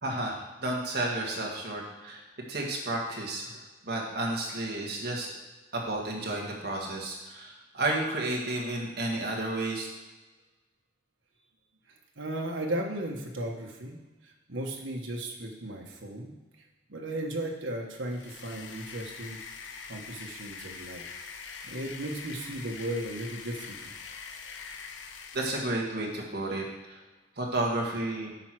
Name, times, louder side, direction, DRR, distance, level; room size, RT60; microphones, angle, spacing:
voice 1, 0.0-2.2 2.5-3.6 3.8-5.3 5.7-9.9 25.3-27.0 27.4-28.3, right 2 dB, 55° right, -2 dB, 1.8 m, -32 dB
voice 2, 12.2-14.0 14.2-16.3 16.9-21.0 21.6-23.9, right 1 dB, 85° right, 0 dB, 1.4 m, -36 dB
sound 1, 18.0-25.7, left 5 dB, 75° left, 0.8 m, -44 dB
9.4 x 4.6 x 6.2 m, 1.2 s
head